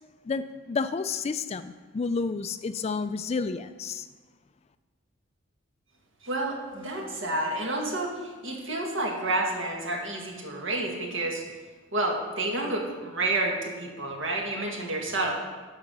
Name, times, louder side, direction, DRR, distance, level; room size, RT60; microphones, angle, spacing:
voice 1, 0.3-4.1, left 4 dB, 30° left, 12 dB, 0.3 m, -30 dB
voice 2, 6.2-11.4 11.9-15.3, right 2 dB, 65° right, 0 dB, 1.9 m, -29 dB
11.5 x 4.9 x 6.9 m, 1.3 s
head